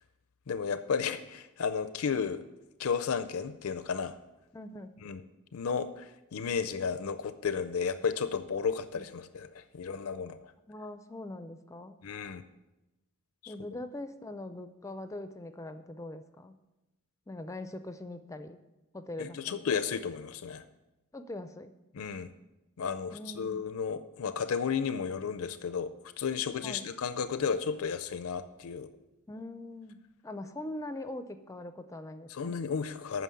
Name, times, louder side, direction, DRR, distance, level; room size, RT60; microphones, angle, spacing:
voice 1, 0.5-2.4 2.8-4.2 5.0-5.2 5.5-10.5 12.0-12.4 13.4-13.5 19.2-20.6 21.9-22.3 22.8-28.9 32.3-33.2, left 6 dB, 70° left, 11 dB, 0.5 m, -33 dB
voice 2, 4.5-5.0 8.9-9.0 10.7-12.0 13.5-16.6 17.3-18.6 18.9-19.7 21.1-21.7 23.1-23.6 26.6-26.9 29.3-32.6, left 1 dB, 15° left, 10 dB, 0.4 m, -42 dB
9.2 x 6.0 x 8.4 m, 1.0 s
head